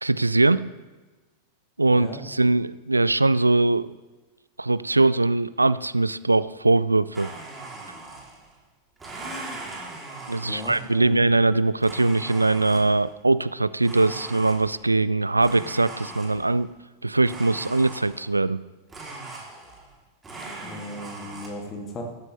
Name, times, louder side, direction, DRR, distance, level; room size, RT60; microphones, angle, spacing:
voice 1, 0.0-0.7 1.8-3.9 4.6-7.3 10.3-16.7 17.0-18.6, right 2 dB, 80° right, 17 dB, 0.3 m, -21 dB
voice 2, 1.9-2.2 10.5-11.3 20.6-22.0, left 1 dB, 25° left, 1 dB, 2.2 m, -36 dB
Domestic sounds home sounds, 7.1-8.6 9.0-11.1 11.8-13.1 13.8-14.9 15.4-16.6 17.2-18.4 18.9-20.0 20.2-21.5, right 2 dB, 15° right, 3.0 m, -40 dB
14.0 x 12.0 x 3.3 m, 1.2 s
figure-of-eight pair, 90°, 0 cm